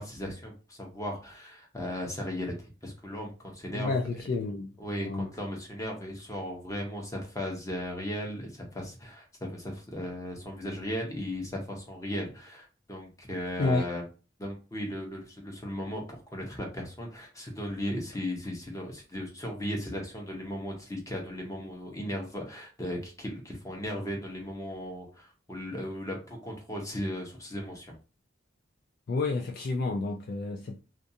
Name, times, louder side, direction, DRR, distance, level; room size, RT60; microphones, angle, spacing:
voice 1, 0.0-2.5 2.8-3.9 4.8-14.0 14.4-28.0, equal, 15° left, 0.7 m, -36 dB
voice 2, 3.7-4.7 5.0-5.3 13.6-13.9 29.1-30.8, left 3 dB, 55° left, 0.3 m, -30 dB
2.5 x 2.3 x 2.6 m
head